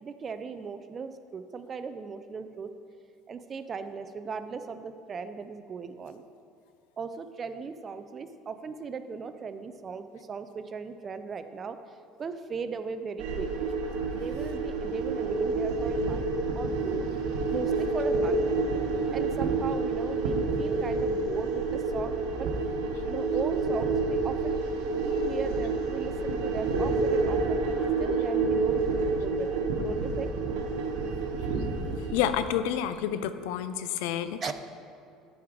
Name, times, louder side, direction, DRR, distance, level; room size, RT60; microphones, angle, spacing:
voice 1, 0.0-2.7 3.3-6.2 7.0-11.8 12.2-13.8 14.1-17.1 17.5-18.4 19.1-22.5 23.0-24.6 25.0-30.3 34.4-34.5, right 5 dB, 25° right, 10 dB, 0.4 m, -38 dB
sound 1, 13.2-32.3, right 3 dB, 90° right, 1.1 m, -28 dB
voice 2, 32.1-34.5, left 10 dB, 85° left, 12 dB, 0.4 m, -29 dB
10.5 x 4.9 x 4.7 m, 2.4 s
cardioid pair, 160°, 0 cm